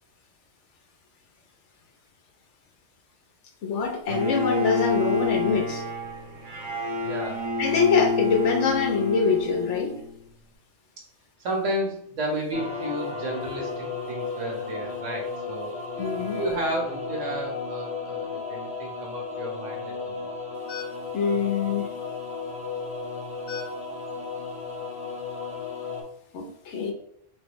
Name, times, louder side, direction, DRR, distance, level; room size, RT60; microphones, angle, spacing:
voice 1, 3.6-5.8 7.6-9.9 16.0-16.4 20.7-20.9 21.1-21.9 23.5-23.7 26.3-26.9, left 5 dB, 75° left, 3 dB, 1.0 m, -25 dB
Bowed string instrument, 4.1-10.2, left 4 dB, 45° right, 1.0 m, -28 dB
voice 2, 7.0-7.4 11.4-15.7 16.3-20.3, right 1 dB, 85° right, 0 dB, 1.4 m, -32 dB
sound 1, 12.5-26.0, left 4 dB, 5° right, 0.9 m, -34 dB
3.8 x 3.3 x 3.0 m, 0.69 s
omnidirectional pair, 1.2 m